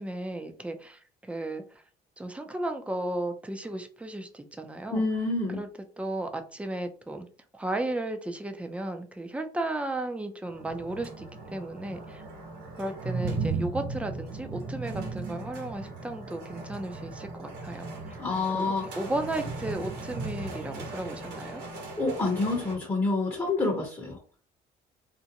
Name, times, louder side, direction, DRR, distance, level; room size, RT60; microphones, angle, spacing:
voice 1, 0.0-1.8 2.2-5.0 5.5-5.7 6.0-7.3 7.5-12.2 12.8-18.2 18.5-21.6, right 1 dB, 5° right, 6 dB, 0.4 m, -34 dB
voice 2, 4.9-5.6 18.2-18.8 22.0-24.2, left 3 dB, 20° left, 0 dB, 0.8 m, -27 dB
sound 1, 10.4-22.7, right 3 dB, 85° right, 1.0 m, -37 dB
2.5 x 2.1 x 2.8 m, 0.40 s
cardioid pair, 110°, 17 cm